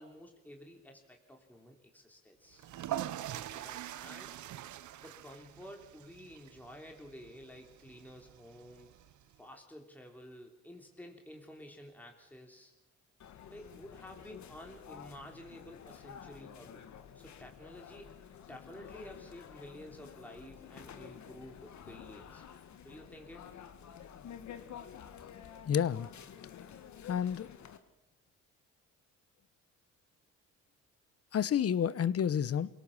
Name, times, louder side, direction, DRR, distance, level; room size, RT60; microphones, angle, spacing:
voice 1, 0.0-2.7 3.5-4.4 5.0-9.0 9.4-12.7 13.5-16.8 17.1-22.4 22.8-23.5, equal, 5° left, 2 dB, 3.4 m, -51 dB
sound 1, 2.5-9.4, right 12 dB, 70° right, 1.0 m, -44 dB
sound 2, 13.2-27.8, left 8 dB, 65° left, 1.8 m, -50 dB
voice 2, 25.7-26.1 27.1-27.5 31.3-32.7, left 8 dB, 50° left, 17 dB, 1.1 m, -29 dB
27.0 x 17.5 x 7.3 m, 0.91 s
cardioid pair, 90°, 30 cm